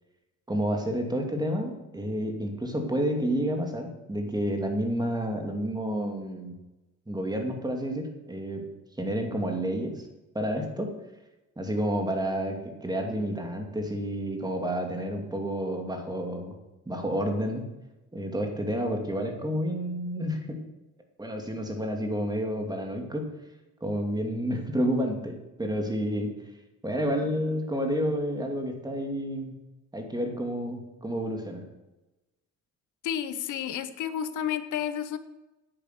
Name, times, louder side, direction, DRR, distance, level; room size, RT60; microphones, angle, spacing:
voice 1, 0.5-6.6 7.1-8.6 9.0-10.0 10.3-10.9 11.6-16.5 16.9-17.7 18.1-20.6 21.2-23.3 23.8-26.3 26.8-29.5 29.9-31.6, equal, 15° right, 3 dB, 2.5 m, -30 dB
voice 2, 33.0-35.2, left 9 dB, 80° left, 12 dB, 1.0 m, -31 dB
10.0 x 8.5 x 6.8 m, 1.0 s
cardioid pair, 90°, 30 cm